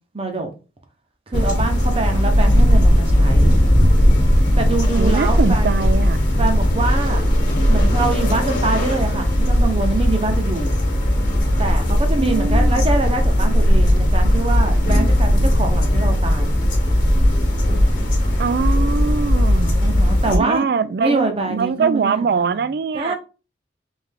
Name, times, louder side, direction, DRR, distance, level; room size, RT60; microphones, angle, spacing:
voice 1, 0.1-0.5 1.3-3.5 4.6-5.7 6.4-7.3 7.7-10.7 11.6-16.6 19.8-20.7 21.0-22.6 22.9-23.1, right 3 dB, 30° right, 0.8 m, -24 dB
sound 1, 1.3-20.4, equal, 45° left, 1.2 m, -17 dB
voice 2, 5.0-6.2 12.1-12.8 18.4-19.8 20.3-23.1, right 5 dB, 55° right, 0.3 m, -22 dB
3.5 x 3.3 x 3.5 m
head